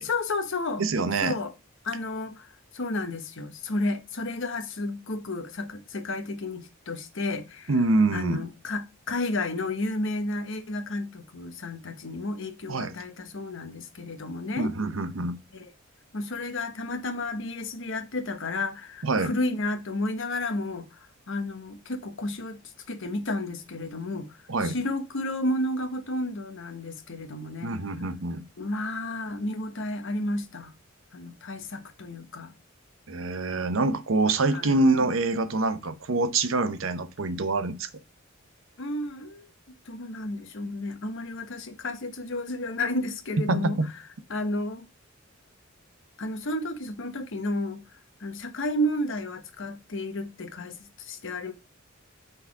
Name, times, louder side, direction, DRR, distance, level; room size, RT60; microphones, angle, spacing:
voice 1, 0.0-0.8 1.2-1.5 1.8-7.7 8.1-14.7 15.5-15.7 16.1-21.0 21.3-22.6 22.9-27.7 28.6-30.7 31.1-32.5 34.5-34.8 38.8-39.5 39.9-43.8 44.3-44.9 46.2-47.8 48.2-51.5, left 2 dB, 65° left, 1.0 m, -32 dB
voice 2, 0.8-1.3 7.7-8.4 12.7-12.9 14.6-15.4 19.0-19.3 24.5-24.7 27.6-28.4 33.1-37.9 43.5-43.9, right 3 dB, 70° right, 0.8 m, -25 dB
5.8 x 3.9 x 4.7 m
head